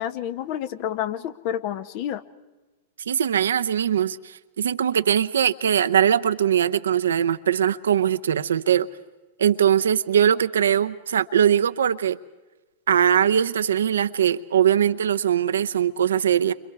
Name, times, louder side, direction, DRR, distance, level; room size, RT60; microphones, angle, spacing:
voice 1, 0.0-2.2, left 10 dB, 50° left, 1.1 m, -29 dB
voice 2, 3.1-8.9 9.4-12.2 12.9-16.5, right 9 dB, 80° right, 0.7 m, -21 dB
29.5 x 25.0 x 4.8 m
hypercardioid pair, 105°, 0 cm